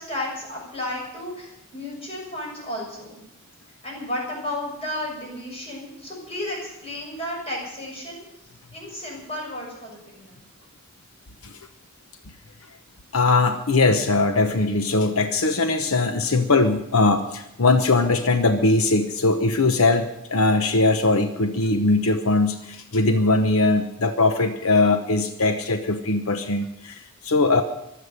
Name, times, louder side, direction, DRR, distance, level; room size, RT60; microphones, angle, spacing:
voice 1, 0.0-3.2 3.8-8.2 8.7-10.4, left 1 dB, 30° left, -1 dB, 6.8 m, -33 dB
voice 2, 13.1-27.6, left 3 dB, 80° left, 7 dB, 1.0 m, -20 dB
23.5 x 8.1 x 6.7 m, 0.84 s
head